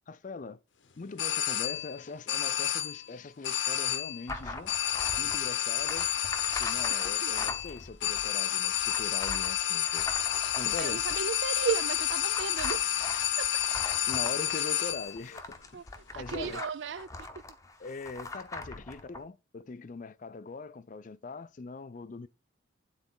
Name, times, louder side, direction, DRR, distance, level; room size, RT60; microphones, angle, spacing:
voice 1, 0.1-0.6 1.0-4.7 5.2-6.1 6.6-10.1 10.6-11.0 14.1-15.8 16.1-16.6 17.8-22.3, left 4 dB, 40° left, 0.4 m, -42 dB
sound 1, 1.2-2.0 2.3-3.1 3.4-4.3 4.7-15.2, left 11 dB, 75° left, 0.7 m, -30 dB
sound 2, 4.3-19.2, left 2 dB, 15° left, 0.8 m, -42 dB
voice 2, 10.8-12.8 13.4-13.6 15.7-15.8 16.1-17.1, right 7 dB, 65° right, 0.4 m, -34 dB
9.5 x 4.0 x 3.9 m
head